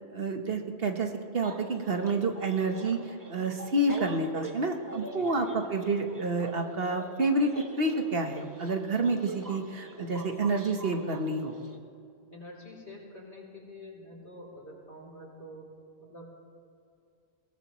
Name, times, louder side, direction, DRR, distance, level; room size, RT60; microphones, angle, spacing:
voice 1, 0.1-11.5, right 2 dB, 55° right, 4 dB, 1.4 m, -29 dB
sound 1, 1.4-11.8, right 1 dB, 15° right, 1.0 m, -44 dB
voice 2, 12.3-15.7 16.0-16.2, left 1 dB, 65° left, -2 dB, 3.8 m, -47 dB
22.0 x 17.5 x 3.1 m, 2.5 s
omnidirectional pair, 1.2 m